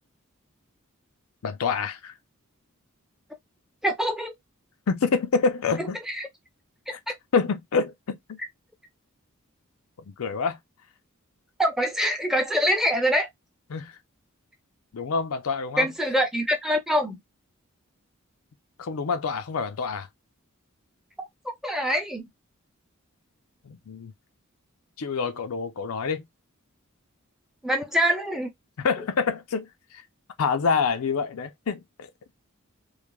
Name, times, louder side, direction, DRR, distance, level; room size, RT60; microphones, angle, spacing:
voice 1, 1.4-2.1 4.9-6.0 6.9-7.0 7.3-8.4 10.1-10.6 13.7-14.0 14.9-15.9 18.8-20.1 23.6-24.1 25.0-26.3 28.8-30.0 30.4-32.1, left 5 dB, 85° left, 0.5 m, -27 dB
voice 2, 3.8-4.3 5.8-6.3 6.9-7.0 11.6-13.3 15.8-17.2 21.4-22.3 27.6-28.5, equal, ahead, 0.6 m, -24 dB
3.2 x 2.0 x 2.3 m
head